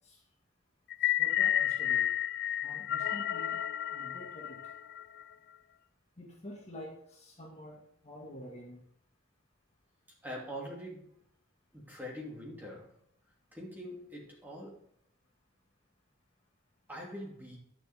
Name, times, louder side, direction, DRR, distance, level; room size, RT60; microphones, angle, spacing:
sound 1, 0.9-5.2, left 12 dB, 55° left, 0.3 m, -31 dB
voice 1, 1.0-2.1 2.6-3.6 3.9-4.6 6.2-8.8, left 1 dB, 35° left, -1 dB, 2.0 m, -48 dB
voice 2, 10.2-11.1 11.7-12.9 13.5-14.8 16.9-17.6, equal, 10° right, -3 dB, 2.9 m, -43 dB
11.0 x 7.1 x 3.6 m, 0.68 s
head